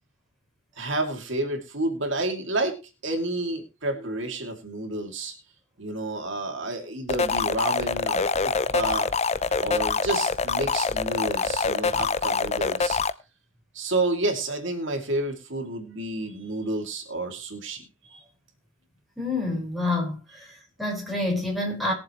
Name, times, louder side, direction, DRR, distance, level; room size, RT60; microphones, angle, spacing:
voice 1, 0.8-5.3 5.8-8.3 8.7-9.1 9.4-13.0 13.7-18.2, right 2 dB, 65° right, 2.7 m, -30 dB
sound 1, 7.1-13.1, left 4 dB, 35° left, 0.7 m, -25 dB
voice 2, 19.2-21.9, left 2 dB, ahead, 5.0 m, -28 dB
21.5 x 7.3 x 3.1 m
head